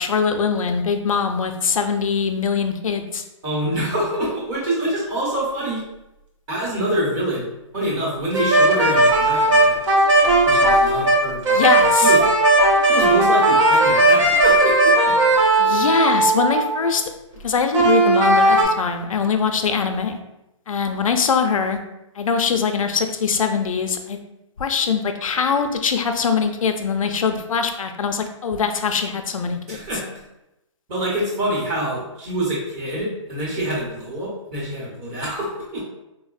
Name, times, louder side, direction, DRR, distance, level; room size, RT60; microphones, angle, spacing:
voice 1, 0.0-3.2 11.5-12.1 15.6-17.0 17.4-20.2 20.7-21.8 22.2-24.2 24.6-29.8, left 6 dB, 85° left, 6 dB, 0.4 m, -22 dB
voice 2, 3.4-5.8 6.5-9.8 10.4-12.2 12.9-15.1 29.7-30.2 30.9-35.8, right 1 dB, 20° right, -6 dB, 0.9 m, -26 dB
alto saxophone solo, 8.3-16.9 17.7-18.6, right 2 dB, 65° right, 0.8 m, -16 dB
3.8 x 2.0 x 2.4 m, 0.91 s
hypercardioid pair, 160°, 17 cm